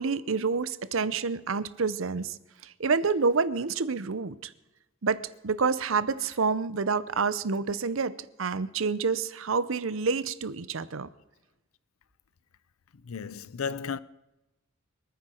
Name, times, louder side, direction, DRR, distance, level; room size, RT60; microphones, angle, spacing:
voice 1, 0.0-2.4 2.6-4.5 5.0-11.1, right 4 dB, 70° right, 0.7 m, -28 dB
voice 2, 13.0-14.0, left 6 dB, 90° left, 0.5 m, -34 dB
25.0 x 9.5 x 4.4 m
head